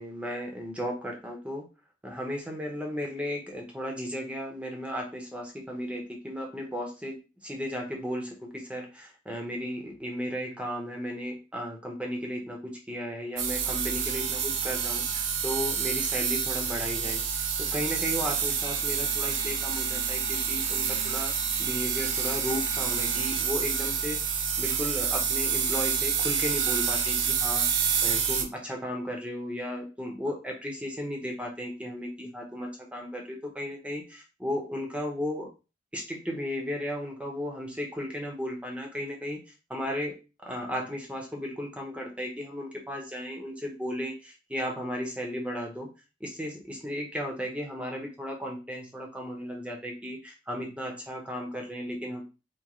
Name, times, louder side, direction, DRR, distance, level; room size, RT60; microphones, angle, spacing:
voice 1, 0.0-1.7 2.0-21.3 21.6-24.2 24.6-27.7 28.0-35.5 35.9-39.4 39.7-40.1 40.4-45.9 46.2-52.2, equal, 5° right, 1 dB, 0.8 m, -35 dB
sound 1, 13.4-28.4, right 7 dB, 90° right, 0.5 m, -28 dB
3.7 x 2.5 x 3.0 m, 0.30 s
head